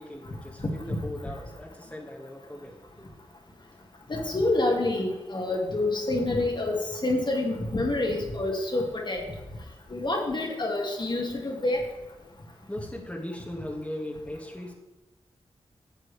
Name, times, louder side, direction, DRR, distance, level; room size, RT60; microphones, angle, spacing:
voice 1, 0.0-3.1 12.7-14.7, left 1 dB, 10° left, -1 dB, 1.9 m, -38 dB
voice 2, 4.1-9.2 9.9-11.8, left 2 dB, 45° left, 0 dB, 2.0 m, -27 dB
12.0 x 7.4 x 3.4 m, 1.0 s
cardioid pair, 50°, 11 cm